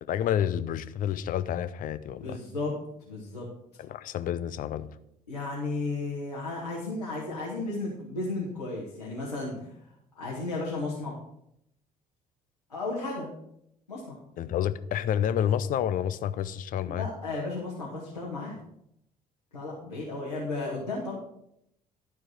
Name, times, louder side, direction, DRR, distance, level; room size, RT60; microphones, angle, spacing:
voice 1, 0.0-2.4 3.8-4.9 14.4-17.1, left 10 dB, 45° left, 13 dB, 0.7 m, -29 dB
voice 2, 2.2-2.7 3.0-3.5 5.3-9.7 10.2-11.2 12.7-13.3 13.9-14.2 16.8-18.6 19.5-21.1, left 3 dB, 85° left, -6 dB, 1.8 m, -34 dB
12.5 x 4.7 x 6.2 m, 0.76 s
figure-of-eight pair, 50°, 19 cm